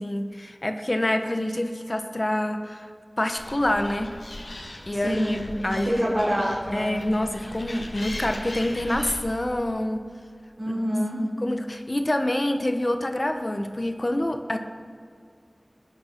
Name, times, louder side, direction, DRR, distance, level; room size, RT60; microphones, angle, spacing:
voice 1, 0.0-2.9 3.2-4.1 4.9-5.4 5.6-6.0 6.7-10.0 11.4-14.6, left 1 dB, 40° left, 6 dB, 1.1 m, -26 dB
Animal, 3.4-9.2, left 1 dB, 90° left, 1.8 m, -39 dB
voice 2, 5.0-5.4 5.7-6.9 10.6-11.2, equal, 50° right, -4 dB, 4.7 m, -26 dB
19.5 x 9.7 x 6.0 m, 2.1 s
wide cardioid pair, 50°, 0 cm